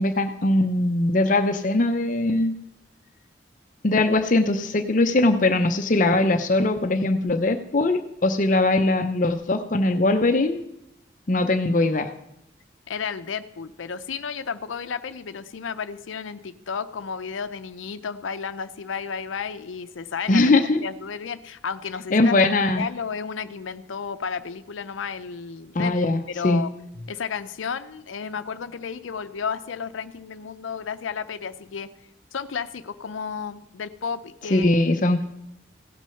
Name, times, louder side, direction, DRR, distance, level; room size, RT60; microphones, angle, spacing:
voice 1, 0.0-2.5 3.8-10.6 11.3-12.1 20.3-20.8 22.1-22.9 25.7-26.6 34.5-35.2, left 2 dB, 40° left, 7 dB, 0.6 m, -21 dB
voice 2, 12.9-25.9 26.3-26.7 27.1-31.9 32.3-34.7, left 6 dB, 85° left, 11 dB, 0.5 m, -32 dB
16.5 x 6.1 x 5.7 m, 0.82 s
head